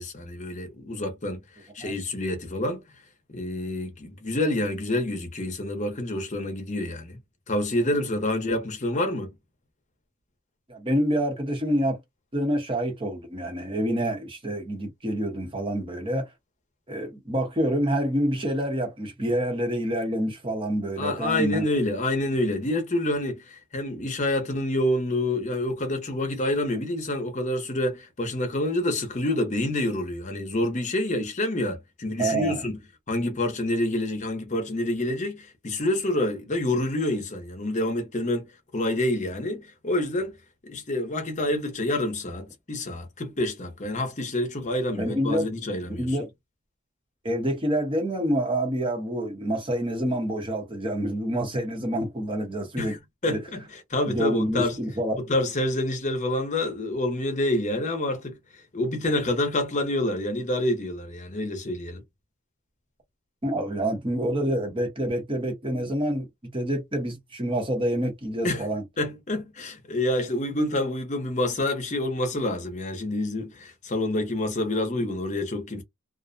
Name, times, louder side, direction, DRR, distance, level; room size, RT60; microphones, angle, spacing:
voice 1, 0.0-1.4 1.7-2.8 3.3-7.2 7.5-9.3 21.0-32.7 33.1-40.3 40.6-46.1 52.8-54.8 55.2-58.4 58.7-62.0 68.4-68.6 69.0-75.8, left 1 dB, 35° left, 0.7 m, -27 dB
voice 2, 10.7-12.0 12.3-16.3 16.9-21.7 32.2-32.6 45.0-45.5 46.0-46.3 47.2-53.0 53.3-53.4 54.1-55.2 63.4-66.3 66.5-68.8, right 1 dB, 25° right, 0.8 m, -27 dB
2.4 x 2.1 x 2.5 m
head